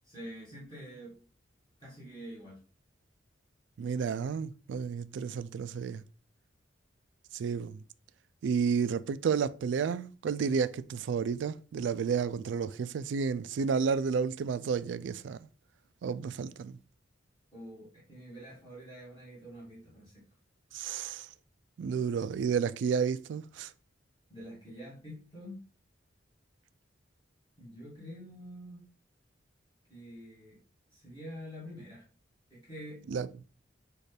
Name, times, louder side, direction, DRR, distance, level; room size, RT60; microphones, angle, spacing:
voice 1, 0.0-1.2 1.8-2.6 17.5-20.2 24.3-25.7 27.6-28.8 29.9-30.6 30.9-32.1 32.5-33.1, equal, 25° left, 1.5 m, -46 dB
voice 2, 3.8-6.0 7.3-7.8 8.4-15.4 16.0-16.8 20.7-21.3 21.8-23.7 33.1-33.3, right 6 dB, 70° right, 0.3 m, -31 dB
6.5 x 2.4 x 3.3 m
head